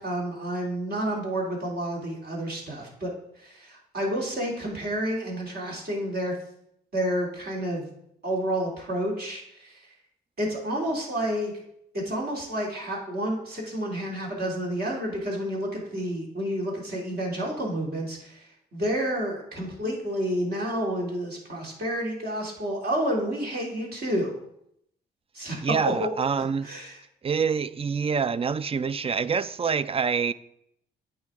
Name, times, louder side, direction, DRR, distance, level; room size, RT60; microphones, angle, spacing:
voice 1, 0.0-6.3 6.9-7.9 8.2-9.9 10.4-11.6 11.9-24.3 25.3-25.6 25.8-26.1 26.4-27.0, right 1 dB, 55° right, 2.8 m, -30 dB
voice 2, 25.6-26.7 27.2-30.3, right 6 dB, 30° right, 0.4 m, -26 dB
8.6 x 5.2 x 3.6 m
hypercardioid pair, 50°, 20 cm